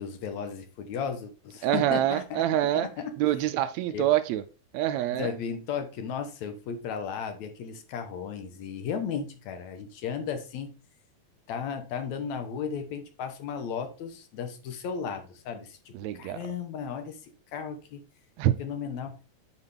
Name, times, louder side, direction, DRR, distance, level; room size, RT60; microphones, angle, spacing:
voice 1, 0.0-2.4 2.7-3.1 3.9-4.1 5.1-10.8 11.5-18.0 18.6-19.2, left 7 dB, 75° left, 2.3 m, -35 dB
voice 2, 1.6-2.9 3.2-4.4 4.7-5.3 15.9-16.4 18.4-18.5, right 12 dB, 80° right, 1.7 m, -26 dB
9.6 x 4.9 x 3.4 m
omnidirectional pair, 3.3 m